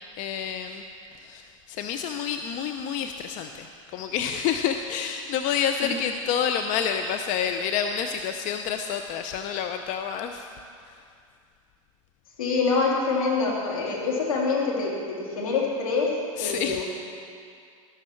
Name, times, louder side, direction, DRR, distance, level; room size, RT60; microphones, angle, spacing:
voice 1, 0.2-0.8 1.1-10.5 10.9-11.0 16.4-16.8, left 8 dB, 45° left, 6 dB, 0.6 m, -29 dB
voice 2, 12.4-16.8, left 4 dB, 80° left, -3 dB, 2.9 m, -25 dB
13.5 x 11.5 x 4.5 m, 2.3 s
hypercardioid pair, 95°, 18 cm